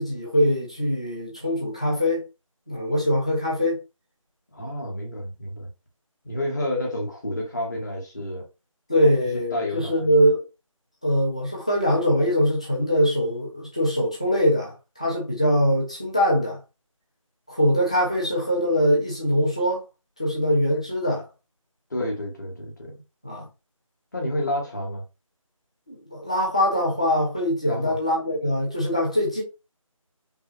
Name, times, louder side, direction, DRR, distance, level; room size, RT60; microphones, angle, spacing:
voice 1, 0.0-2.3 2.7-3.8 8.9-10.4 11.0-16.6 17.5-19.8 20.2-21.2 23.2-23.5 25.9-29.4, equal, 10° left, 0.7 m, -22 dB
voice 2, 4.5-5.7 6.2-8.4 9.5-10.1 21.9-23.0 24.1-25.0 27.6-28.0, left 1 dB, 30° left, 1.3 m, -30 dB
4.7 x 3.4 x 2.9 m
figure-of-eight pair, 165°, 18 cm